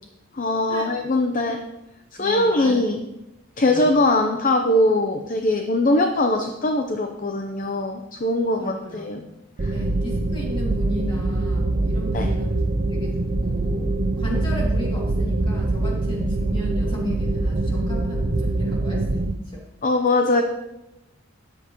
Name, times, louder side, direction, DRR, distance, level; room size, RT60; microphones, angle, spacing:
voice 1, 0.3-1.6 2.2-3.0 3.6-9.2 9.6-9.7 12.1-12.3 19.8-20.4, left 2 dB, 40° left, 4 dB, 0.7 m, -21 dB
voice 2, 2.2-2.8 3.7-3.9 8.6-9.4 9.7-12.6 12.9-13.9 14.2-19.6, left 1 dB, 25° left, -3 dB, 2.6 m, -35 dB
sound 1, 9.6-19.3, right 2 dB, 40° right, 0.6 m, -24 dB
13.5 x 9.8 x 3.1 m, 0.93 s
head